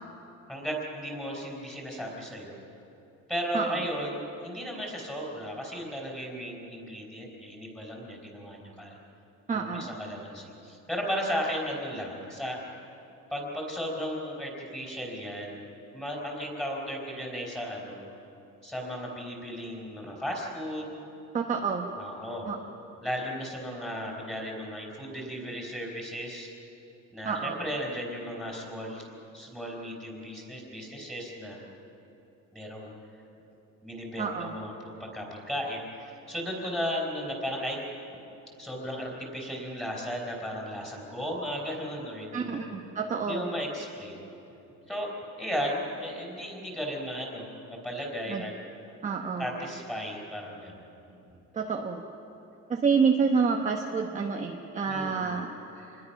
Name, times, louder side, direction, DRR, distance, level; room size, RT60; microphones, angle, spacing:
voice 1, 0.5-2.6 3.3-9.0 9.5-12.6 13.3-15.6 15.9-18.0 18.6-21.0 22.0-22.5 23.0-26.5 27.1-29.1 29.3-31.6 32.5-32.9 33.8-37.8 38.6-42.6 43.2-44.2 44.9-45.1 45.4-48.5 49.4-51.2 54.9-55.4, equal, ahead, -1 dB, 4.6 m, -35 dB
voice 2, 9.5-9.9 21.3-21.9 22.5-22.6 27.2-27.6 34.2-34.6 42.3-43.5 48.3-48.4 49.0-49.7 51.5-52.0 52.7-56.1, right 5 dB, 25° right, 1 dB, 1.1 m, -28 dB
27.5 x 21.0 x 5.9 m, 2.9 s
cardioid pair, 160°, 30 cm